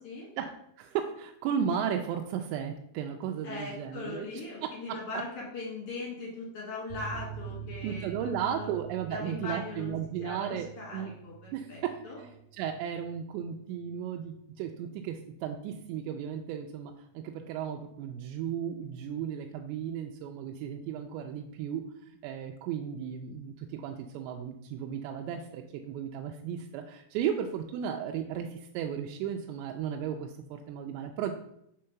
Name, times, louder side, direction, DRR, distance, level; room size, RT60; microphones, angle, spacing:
voice 1, 0.4-4.3 4.6-5.2 6.0-6.1 7.8-10.7 10.9-11.1 11.5-31.3, right 8 dB, 85° right, 3 dB, 2.7 m, -35 dB
voice 2, 3.4-8.7 9.1-9.9 10.2-12.2, left 3 dB, 50° left, -4 dB, 1.8 m, -40 dB
sound 1, 6.9-14.0 14.3-14.4 14.7-14.8, right 8 dB, 55° right, 2.8 m, -46 dB
6.4 x 3.8 x 5.6 m, 0.75 s
omnidirectional pair, 5.2 m